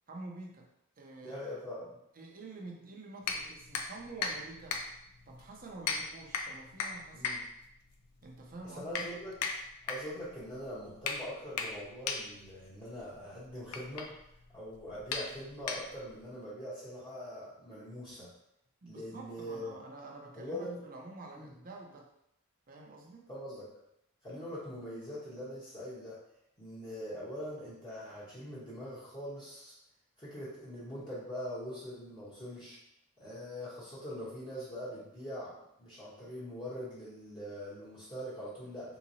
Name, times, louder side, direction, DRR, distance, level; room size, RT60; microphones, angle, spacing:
voice 1, 0.1-1.4 2.2-4.8 5.3-7.3 8.2-9.1 18.8-22.1 22.7-23.3, right 2 dB, 40° right, 0 dB, 0.6 m, -48 dB
voice 2, 1.2-2.0 7.1-7.4 8.8-9.3 9.8-14.1 14.5-18.3 18.9-19.8 20.3-20.8 21.3-21.5 23.3-23.7 24.2-26.2 26.6-29.7 30.2-32.8 33.2-39.0, equal, 20° left, -10 dB, 1.0 m, -42 dB
sound 1, 3.2-16.2, left 5 dB, 85° left, 0.5 m, -39 dB
3.8 x 2.9 x 2.7 m, 0.79 s
head